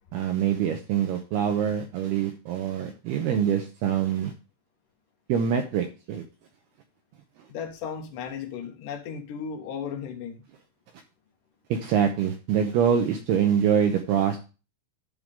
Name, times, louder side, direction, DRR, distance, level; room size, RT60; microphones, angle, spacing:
voice 1, 0.1-4.3 5.3-6.2 11.7-14.4, right 8 dB, 85° right, 2.2 m, -25 dB
voice 2, 7.5-10.4, left 7 dB, 85° left, 1.9 m, -35 dB
11.0 x 3.8 x 6.6 m
omnidirectional pair, 5.6 m